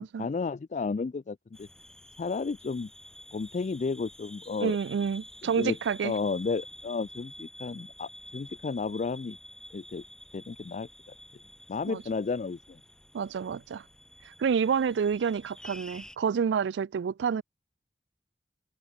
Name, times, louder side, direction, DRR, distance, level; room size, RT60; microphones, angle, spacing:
voice 1, 0.0-1.7 2.2-2.9 3.3-4.8 5.4-5.8 6.0-9.4 9.7-10.0 10.3-10.9 11.7-12.8, left 4 dB, 40° left, 0.3 m, -32 dB
sound 1, 1.5-16.2, left 1 dB, 5° left, 0.8 m, -49 dB
voice 2, 4.6-6.1 11.9-12.0 13.1-13.8 14.3-17.4, right 6 dB, 90° right, 0.4 m, -28 dB
head